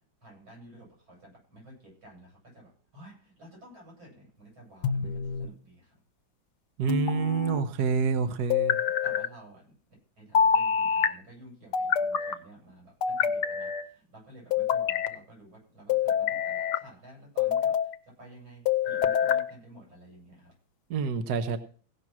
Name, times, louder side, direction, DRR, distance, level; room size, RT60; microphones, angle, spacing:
voice 1, 0.2-6.0 9.0-9.7 10.2-20.5, right 1 dB, 85° right, -2 dB, 9.0 m, -52 dB
sound 1, 4.8-5.5 6.9-7.6 8.5-9.3 10.3-11.1 11.7-12.4 13.0-13.9 14.5-15.1 15.9-16.8 17.4-17.9 18.7-19.5, left 7 dB, 65° left, 1.2 m, -26 dB
voice 2, 6.8-8.8 20.9-21.6, right 6 dB, 60° right, 9 dB, 1.3 m, -27 dB
16.5 x 6.0 x 6.0 m, 0.43 s
omnidirectional pair, 2.2 m